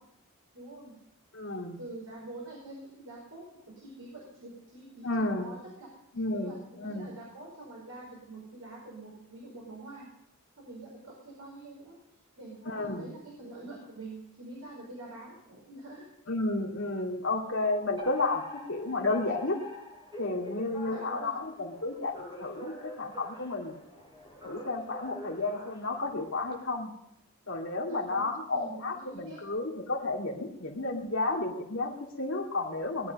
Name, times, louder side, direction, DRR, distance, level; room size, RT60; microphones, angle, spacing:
voice 1, 0.5-0.9 1.8-3.5 3.8-5.9 6.3-10.1 10.6-12.0 12.4-16.0 17.8-18.0 20.8-21.3 27.8-29.4, right 2 dB, 75° right, -3 dB, 5.2 m, -46 dB
voice 2, 1.3-1.8 5.0-5.5 6.2-7.1 12.7-13.1 16.3-18.4 18.7-19.6 20.2-23.8 24.4-26.9 27.5-33.1, left 2 dB, 60° left, 0 dB, 2.3 m, -32 dB
Alarm, 18.0-26.5, left 1 dB, 20° right, 7.1 m, -46 dB
20.0 x 11.5 x 5.4 m, 0.83 s
head